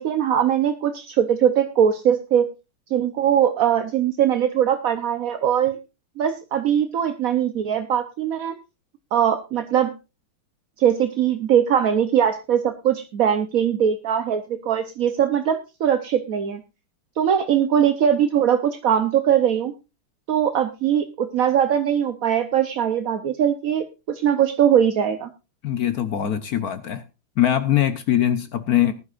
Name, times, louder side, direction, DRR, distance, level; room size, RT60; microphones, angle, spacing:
voice 1, 0.0-2.5 2.9-5.8 6.2-8.5 9.1-9.9 10.8-16.6 17.2-19.7 20.3-25.3, right 9 dB, 55° right, 8 dB, 1.0 m, -21 dB
voice 2, 25.6-27.0 27.4-28.9, left 11 dB, 60° left, 12 dB, 1.0 m, -22 dB
19.5 x 11.0 x 2.5 m, 0.27 s
omnidirectional pair, 2.4 m